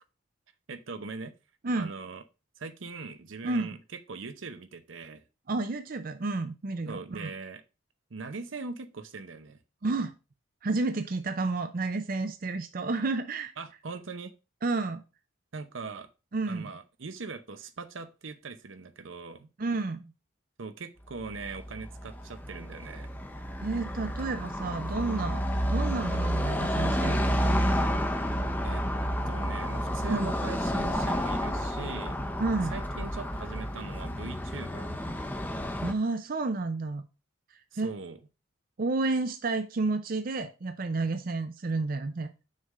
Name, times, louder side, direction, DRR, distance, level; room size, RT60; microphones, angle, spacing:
voice 1, 0.7-1.3 1.8-2.2 2.6-3.8 4.1-5.2 6.9-7.6 8.1-9.6 13.6-14.3 15.5-16.1 16.5-19.5 20.6-23.1 28.6-28.8 29.3-32.2 32.7-35.0 37.7-38.2, right 4 dB, 80° right, 10 dB, 0.8 m, -40 dB
voice 2, 3.4-3.8 5.5-7.3 9.8-10.1 10.6-13.5 14.6-15.0 16.3-16.7 19.6-20.1 23.6-25.4 25.7-27.3 30.1-30.4 32.4-32.8 35.8-37.0 37.8-37.9 38.8-42.3, right 3 dB, 45° right, 9 dB, 0.5 m, -30 dB
Car passing by / Traffic noise roadway noise, 21.2-35.9, equal, 10° left, 0.7 m, -30 dB
6.4 x 3.7 x 5.5 m, 0.30 s
head